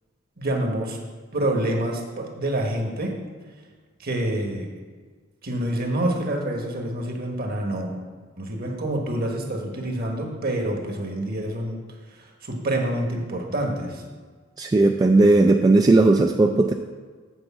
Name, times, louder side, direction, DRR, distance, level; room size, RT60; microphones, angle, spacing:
voice 1, 0.4-1.0 1.3-3.2 4.0-4.7 5.4-7.9 8.4-11.8 12.4-14.0, right 1 dB, 50° right, 2 dB, 1.4 m, -27 dB
voice 2, 14.6-16.7, right 2 dB, 20° right, 4 dB, 0.3 m, -17 dB
8.0 x 4.5 x 7.2 m, 1.5 s
head